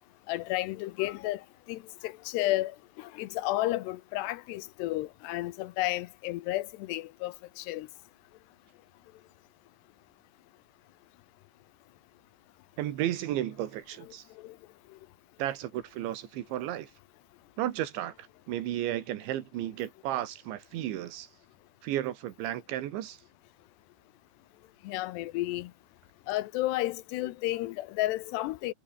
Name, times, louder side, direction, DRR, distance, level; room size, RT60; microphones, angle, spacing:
voice 1, 0.3-1.4 1.7-2.7 3.0-7.9 14.4-14.5 24.9-25.7 26.3-28.7, left 17 dB, 80° left, 2.8 m, -32 dB
voice 2, 12.8-14.2 15.4-16.9 17.6-21.3 21.8-23.2, right 13 dB, 90° right, 4.1 m, -33 dB
omnidirectional pair, 5.1 m